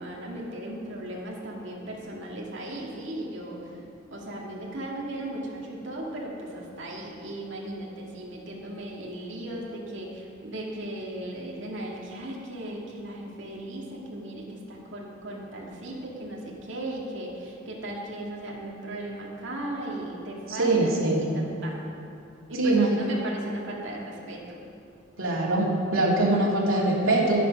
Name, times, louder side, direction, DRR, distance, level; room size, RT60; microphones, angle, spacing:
voice 1, 0.0-3.8 4.1-21.8 22.5-24.6, right 1 dB, 65° right, -3 dB, 2.2 m, -37 dB
voice 2, 20.5-21.2 22.6-22.9 25.2-27.5, right 2 dB, 85° right, -5 dB, 2.5 m, -23 dB
11.5 x 11.0 x 5.3 m, 2.6 s
head